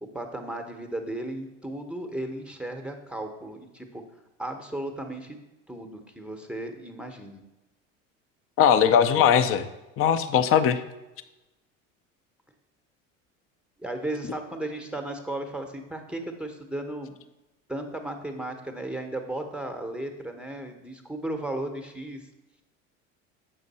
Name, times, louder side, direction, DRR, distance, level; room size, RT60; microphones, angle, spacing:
voice 1, 0.0-4.0 4.4-5.4 5.7-7.4 13.8-17.2 17.7-22.3, right 1 dB, 5° right, 5 dB, 0.8 m, -35 dB
voice 2, 8.6-9.6 10.0-10.8, left 8 dB, 35° left, 11 dB, 0.5 m, -20 dB
7.6 x 5.1 x 4.1 m, 1.0 s
hypercardioid pair, 80°, 38 cm